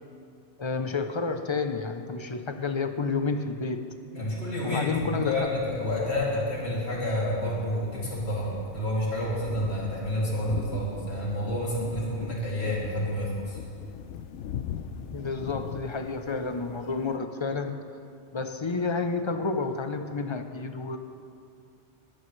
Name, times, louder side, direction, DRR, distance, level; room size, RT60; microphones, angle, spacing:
voice 1, 0.6-3.8 4.6-5.5 15.1-17.9 18.3-21.0, left 4 dB, 30° left, 7 dB, 0.6 m, -30 dB
voice 2, 4.1-13.6, left 1 dB, 65° left, -6 dB, 3.1 m, -29 dB
sound 1, 5.0-17.2, left 8 dB, 85° left, 0.9 m, -41 dB
20.0 x 14.0 x 3.2 m, 2.4 s
omnidirectional pair, 1.2 m